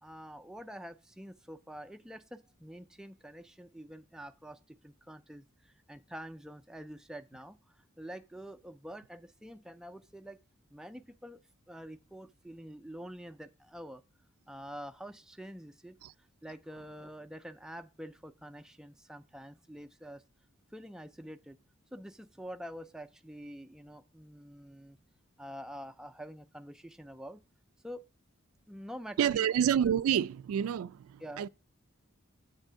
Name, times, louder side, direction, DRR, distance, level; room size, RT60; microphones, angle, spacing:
voice 1, 0.0-10.4 10.7-11.4 11.7-14.0 14.5-16.0 16.4-20.2 20.7-21.6 21.9-25.0 25.4-27.4 27.8-28.0 28.7-29.5 31.2-31.5, equal, 5° right, 0.3 m, -47 dB
voice 2, 29.2-31.5, right 9 dB, 85° right, 0.3 m, -28 dB
8.2 x 3.5 x 6.6 m
head